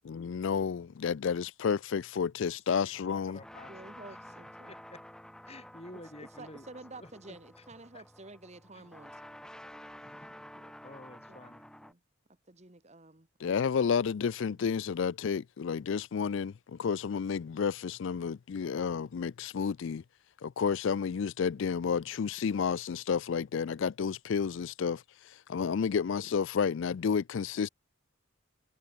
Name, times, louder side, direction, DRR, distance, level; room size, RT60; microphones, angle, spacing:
voice 1, 0.1-3.4 13.4-20.0 20.4-25.0 25.5-27.7, left 6 dB, 60° left, 0.4 m, -31 dB
voice 2, 2.9-3.7 4.7-5.0 5.5-6.6 7.0-7.4 7.9-8.0 8.7-8.9 10.0-11.7, left 1 dB, 30° left, 4.6 m, -51 dB
sound 1, 2.9-11.9, equal, 5° left, 1.4 m, -51 dB
voice 3, 3.7-4.7 5.9-9.2 11.3-11.4 11.8-12.0 12.5-13.7, right 2 dB, 30° right, 1.8 m, -51 dB
head